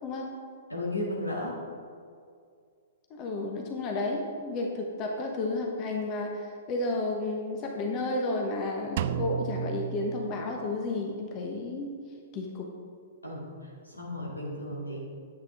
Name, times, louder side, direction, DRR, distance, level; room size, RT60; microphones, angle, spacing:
voice 1, 0.0-0.3 3.1-12.0 12.3-12.7, left 2 dB, 30° left, 1 dB, 1.1 m, -32 dB
voice 2, 0.7-1.5 13.2-13.5 13.8-15.1, left 1 dB, 90° left, -4 dB, 2.5 m, -34 dB
Drum, 9.0-10.9, right 9 dB, 50° right, 0.3 m, -33 dB
10.0 x 8.5 x 3.6 m, 2.2 s
figure-of-eight pair, 110°, 0 cm